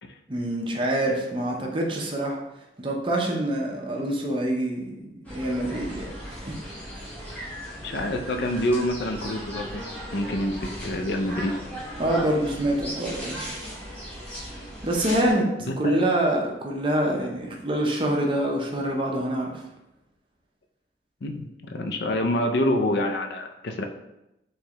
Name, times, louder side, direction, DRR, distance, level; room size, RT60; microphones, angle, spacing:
voice 1, 0.3-2.4 2.8-6.1 6.4-6.6 12.0-13.4 14.8-19.6, right 1 dB, 30° right, 0 dB, 0.6 m, -26 dB
sound 1, 5.2-15.3, equal, 10° left, 1.2 m, -37 dB
voice 2, 7.8-9.8 10.1-11.5 15.7-16.0 21.2-23.8, left 1 dB, 70° left, 5 dB, 0.4 m, -27 dB
4.5 x 3.2 x 2.9 m, 0.88 s
head